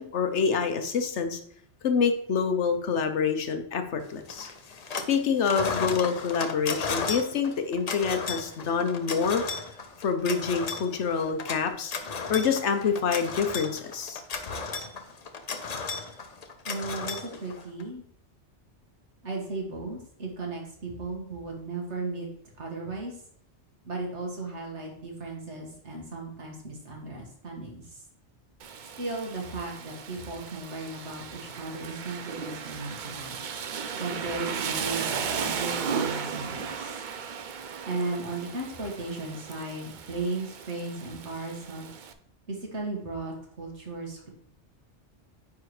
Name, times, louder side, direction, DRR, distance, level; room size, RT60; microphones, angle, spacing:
voice 1, 0.0-1.4 1.8-4.5 4.9-9.4 10.0-11.9 12.3-14.2, left 6 dB, 75° left, 7 dB, 1.2 m, -27 dB
sound 1, 4.3-5.2 5.4-17.8, left 4 dB, 40° left, 0.7 m, -34 dB
voice 2, 16.6-18.0 19.2-22.3 22.6-23.2 23.8-28.0 29.0-33.4 34.0-37.0 37.9-41.9 42.5-44.3, right 2 dB, 75° right, -1 dB, 2.1 m, -36 dB
Rain, 28.6-42.1, right 6 dB, 55° right, 0.6 m, -35 dB
9.3 x 4.7 x 3.2 m, 0.63 s
omnidirectional pair, 1.2 m